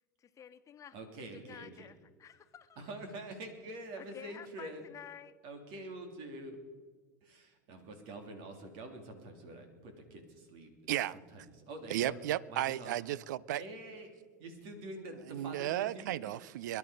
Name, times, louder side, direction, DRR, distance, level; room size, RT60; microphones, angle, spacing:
voice 1, 0.2-2.8 3.9-5.3, left 8 dB, 35° left, 1.3 m, -52 dB
voice 2, 0.9-1.9 2.8-4.8 5.4-6.6 7.2-12.2 12.5-13.0 13.6-14.1 14.4-16.4, right 2 dB, 60° right, 3.2 m, -46 dB
voice 3, 11.9-13.6 15.3-16.8, right 13 dB, 80° right, 0.5 m, -34 dB
22.5 x 11.5 x 5.1 m
hypercardioid pair, 95°, 10 cm